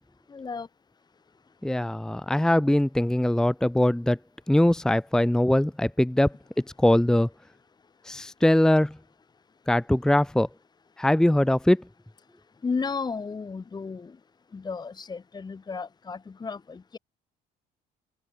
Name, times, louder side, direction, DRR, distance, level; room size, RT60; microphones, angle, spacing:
voice 1, 0.3-0.7 12.6-14.2 14.5-17.0, left 5 dB, 25° left, 1.8 m, -33 dB
voice 2, 1.6-4.2 4.5-6.3 6.8-7.3 8.1-8.9 9.7-10.5 11.0-11.8, left 1 dB, 5° left, 0.9 m, -21 dB
open air
cardioid pair, 110°, 17 cm